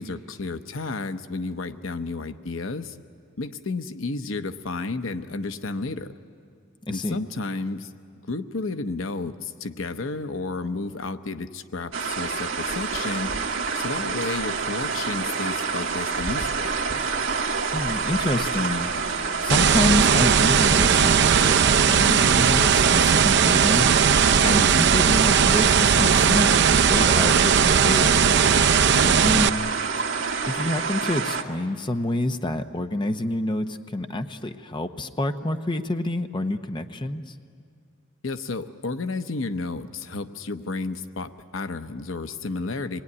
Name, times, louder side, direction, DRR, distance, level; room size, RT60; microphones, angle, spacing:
voice 1, 0.0-3.0 3.4-6.1 6.9-7.9 8.3-13.3 13.7-16.7 24.5-24.9 28.9-29.3 38.2-43.0, left 3 dB, 85° left, 9 dB, 0.9 m, -32 dB
voice 2, 6.9-7.2 17.7-28.3 29.2-30.1 30.5-37.3, left 1 dB, 25° left, 7 dB, 0.8 m, -28 dB
sound 1, 11.9-31.4, right 5 dB, 75° right, 1.8 m, -28 dB
sound 2, 19.5-29.5, right 7 dB, 60° right, 0.5 m, -18 dB
26.5 x 20.5 x 9.7 m, 2.3 s
head